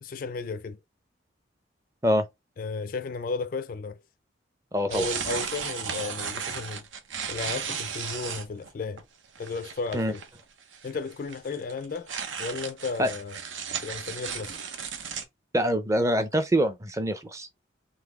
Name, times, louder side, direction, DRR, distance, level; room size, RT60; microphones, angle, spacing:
voice 1, 0.0-0.8 2.6-4.0 4.9-6.8 7.3-9.0 9.4-10.2 10.8-12.1 12.4-13.4 13.8-14.6, left 4 dB, 45° left, 0.3 m, -34 dB
voice 2, 4.7-5.1 9.9-10.1 13.0-13.1 15.5-17.5, equal, 15° right, 0.5 m, -24 dB
sound 1, 4.9-8.7 9.0-9.1 9.4-10.4 10.7-15.2, right 6 dB, 90° right, 0.8 m, -35 dB
3.9 x 3.1 x 3.5 m
head